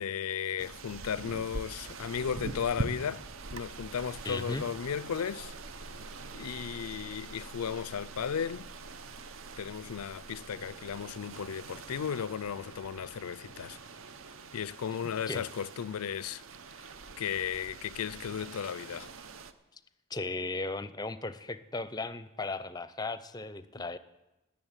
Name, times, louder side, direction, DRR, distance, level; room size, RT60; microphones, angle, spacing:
voice 1, 0.0-3.2 3.5-5.5 6.3-8.7 9.6-13.8 14.5-16.4 17.2-19.1, left 8 dB, 90° left, 0.4 m, -35 dB
sound 1, 0.6-19.5, right 3 dB, 65° right, 0.8 m, -44 dB
voice 2, 4.3-4.6 15.3-15.5 20.1-24.0, left 3 dB, 20° left, 0.5 m, -36 dB
sound 2, 5.4-12.5, equal, 40° right, 2.3 m, -53 dB
19.5 x 7.2 x 8.9 m
head